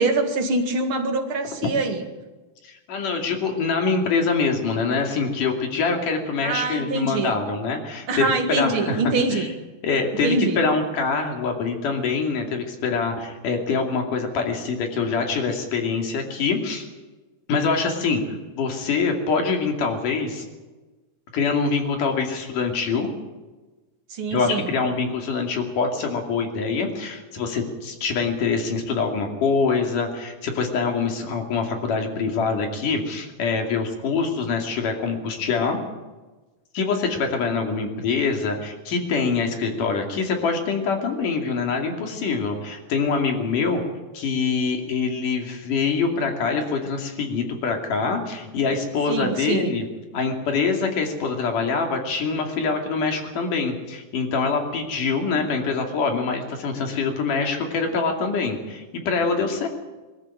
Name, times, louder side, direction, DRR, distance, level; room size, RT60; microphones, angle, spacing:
voice 1, 0.0-2.0 6.4-7.4 8.1-9.5 10.2-10.6 24.1-24.7 49.1-49.7, right 3 dB, 45° right, 5 dB, 2.5 m, -24 dB
voice 2, 2.6-9.0 9.3-9.5 9.8-16.9 17.5-18.2 18.6-20.4 21.3-23.1 24.3-35.8 36.7-43.8 44.1-49.9 50.1-59.7, left 4 dB, 90° left, 3 dB, 4.2 m, -24 dB
22.0 x 13.5 x 9.1 m, 1.2 s
omnidirectional pair, 3.6 m